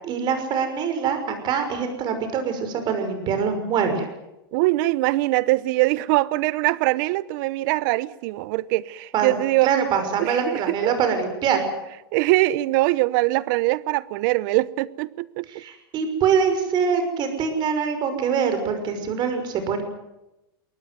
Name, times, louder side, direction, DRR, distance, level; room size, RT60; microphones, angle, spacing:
voice 1, 0.0-4.1 9.1-9.3 9.6-11.6 15.5-19.8, right 6 dB, 35° right, 5.8 m, -24 dB
voice 2, 4.5-9.7 10.2-10.9 12.1-15.5, right 19 dB, 55° right, 1.0 m, -22 dB
22.5 x 19.0 x 9.5 m
supercardioid pair, 135°, 13 cm